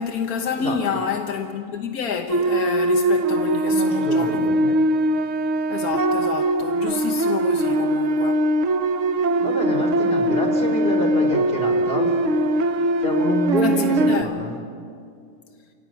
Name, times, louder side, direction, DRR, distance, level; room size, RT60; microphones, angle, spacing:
voice 1, 0.0-5.0 5.7-8.5 13.6-14.4, left 6 dB, 85° left, 1.7 m, -28 dB
sound 1, 2.3-14.2, right 1 dB, 65° right, 1.2 m, -21 dB
voice 2, 3.7-4.7 9.4-12.1 13.0-14.5, equal, 40° left, 3.9 m, -27 dB
29.0 x 16.5 x 9.1 m
omnidirectional pair, 1.5 m